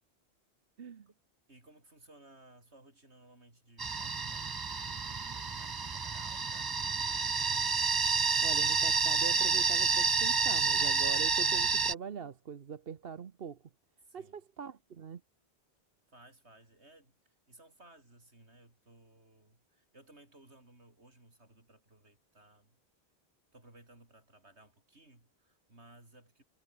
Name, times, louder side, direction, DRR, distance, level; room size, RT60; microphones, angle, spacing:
voice 1, 1.5-4.7 5.0-7.3 14.0-14.4 16.1-22.8 23.5-26.4, right 2 dB, 85° right, 6.3 m, -59 dB
sound 1, 3.8-11.9, right 5 dB, 30° right, 0.5 m, -29 dB
voice 2, 8.4-13.6 14.1-15.2, right 7 dB, 60° right, 1.2 m, -42 dB
omnidirectional pair, 1.1 m